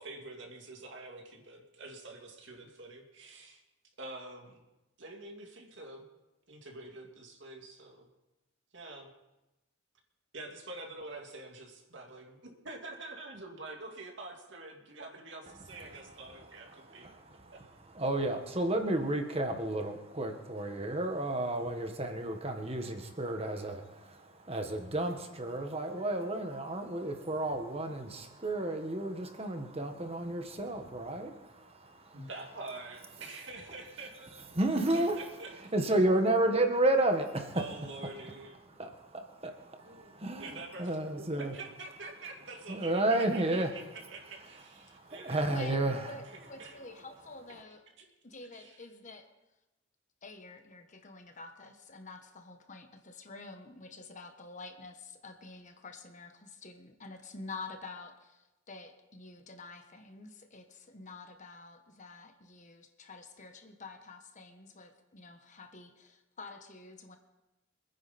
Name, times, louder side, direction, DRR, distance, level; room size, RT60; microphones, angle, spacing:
voice 1, 0.0-3.6 4.0-4.6 5.0-6.1 6.5-8.1 8.7-9.1 10.3-17.1 17.5-17.6 32.1-34.6 34.9-35.7 37.5-38.6 39.8-45.4 46.6-46.7 48.0-48.1 48.5-48.8, right 2 dB, 60° right, 1 dB, 2.5 m, -46 dB
voice 2, 16.7-17.5 17.8-32.2 34.5-35.2 35.7-37.6 38.8-41.5 42.7-43.7 44.8-46.1, right 1 dB, 30° right, 5 dB, 1.6 m, -32 dB
voice 3, 45.4-47.8 48.2-49.3 50.2-67.2, left 3 dB, 40° left, 5 dB, 1.3 m, -48 dB
25.0 x 9.8 x 4.3 m, 1.0 s
head